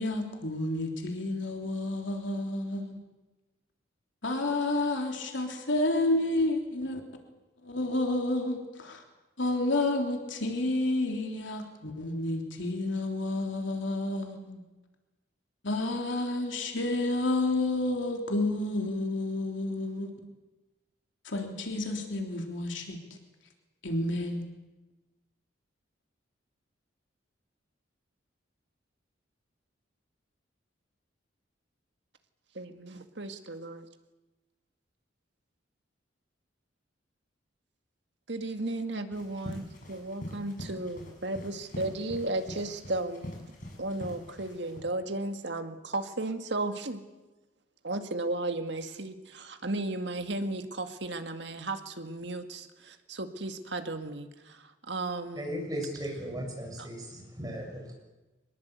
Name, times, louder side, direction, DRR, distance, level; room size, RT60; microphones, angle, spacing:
voice 1, 0.0-3.0 4.2-7.0 7.6-9.0 9.4-14.6 15.6-20.1 21.2-23.0 23.8-24.4, left 2 dB, 75° left, 3 dB, 3.4 m, -30 dB
voice 2, 32.5-33.9 38.3-43.3 43.8-47.0 47.8-55.6 56.8-56.9, right 2 dB, 65° right, 6 dB, 2.1 m, -35 dB
sound 1, 39.1-44.8, equal, 45° left, 7.6 m, -43 dB
voice 3, 55.4-57.9, equal, 20° right, 1 dB, 7.3 m, -37 dB
25.0 x 21.0 x 8.3 m, 1.1 s
head